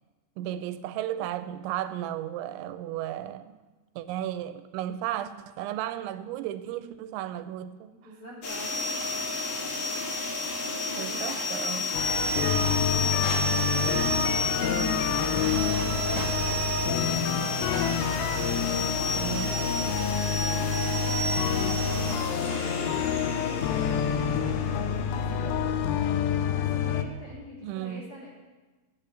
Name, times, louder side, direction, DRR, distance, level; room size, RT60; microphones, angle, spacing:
voice 1, 0.4-3.6 4.0-7.9 11.0-11.9 19.2-19.5 27.6-28.0, right 12 dB, 85° right, 2.9 m, -34 dB
voice 2, 7.9-8.9 10.6-11.1 12.8-17.7 18.4-19.8 21.5-25.6 26.5-28.3, right 1 dB, 35° left, 4.1 m, -46 dB
sound 1, 8.4-25.7, left 1 dB, 60° left, 1.5 m, -31 dB
sound 2, 11.9-27.0, left 8 dB, 80° left, 2.6 m, -28 dB
13.0 x 8.9 x 6.7 m
omnidirectional pair, 5.3 m